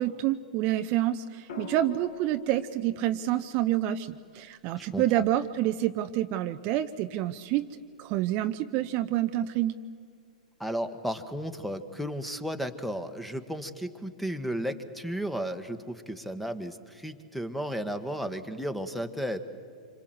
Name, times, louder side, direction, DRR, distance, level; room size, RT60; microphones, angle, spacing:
voice 1, 0.0-9.7, right 13 dB, 40° right, 9 dB, 0.7 m, -28 dB
sound 1, 1.5-5.6 7.3-7.7, left 4 dB, 55° left, 1.8 m, -46 dB
voice 2, 4.8-5.2 10.6-19.4, equal, ahead, 10 dB, 1.5 m, -34 dB
27.0 x 25.5 x 7.9 m, 2.3 s
figure-of-eight pair, 105°, 4 cm